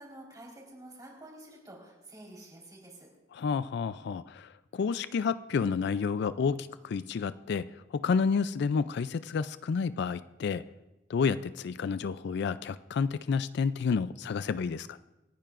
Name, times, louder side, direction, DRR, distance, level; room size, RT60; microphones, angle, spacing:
voice 1, 0.0-3.1, right 1 dB, 20° right, -2 dB, 4.1 m, -49 dB
voice 2, 3.3-10.6 11.1-15.0, left 5 dB, 60° left, 14 dB, 0.3 m, -30 dB
27.0 x 10.5 x 2.5 m, 1.0 s
head